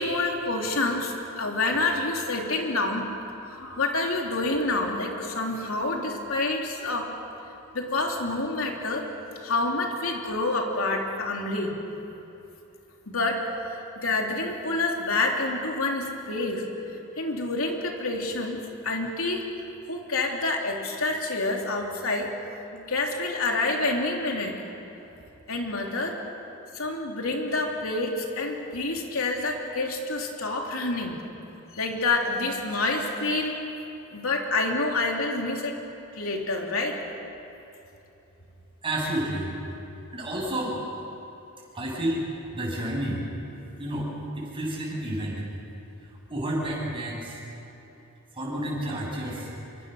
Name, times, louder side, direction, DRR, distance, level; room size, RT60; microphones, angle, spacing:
voice 1, 0.0-3.1 3.5-7.1 7.7-9.0 9.4-11.7 13.1-16.6 17.2-19.4 19.9-22.3 22.7-24.6 25.5-26.2 26.7-31.2 31.7-33.5 34.1-35.8 36.1-37.0, left 2 dB, 80° left, 1 dB, 3.3 m, -28 dB
voice 2, 38.8-39.5 40.1-40.8 41.7-42.3 42.5-43.2 43.8-44.1 44.3-45.4 46.3-47.4 48.4-49.5, right 1 dB, 25° right, -3 dB, 7.4 m, -30 dB
26.5 x 24.0 x 6.7 m, 3.0 s
head